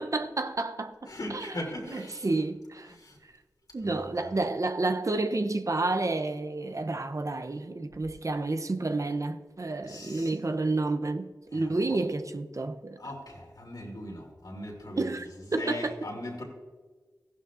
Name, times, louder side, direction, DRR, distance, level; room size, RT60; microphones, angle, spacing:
voice 1, 0.0-1.5 1.9-3.0 3.7-13.0 15.0-15.9, right 2 dB, 50° right, 0.6 m, -30 dB
voice 2, 1.1-2.3 2.9-3.2 3.8-4.4 9.8-10.3 11.5-12.0 13.0-16.4, left 1 dB, 70° left, 3.0 m, -40 dB
15.0 x 11.5 x 2.5 m
cardioid pair, 40°, 7 cm